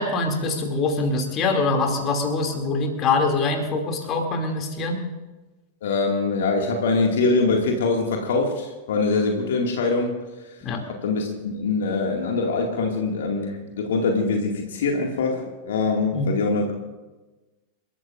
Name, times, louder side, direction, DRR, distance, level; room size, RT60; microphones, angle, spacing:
voice 1, 0.0-5.0 10.6-10.9 16.1-16.3, left 3 dB, 30° left, 3 dB, 2.6 m, -24 dB
voice 2, 5.8-10.2 10.9-16.7, left 3 dB, 60° left, 1 dB, 2.1 m, -23 dB
29.0 x 13.5 x 2.5 m, 1.2 s
figure-of-eight pair, 90°, 0 cm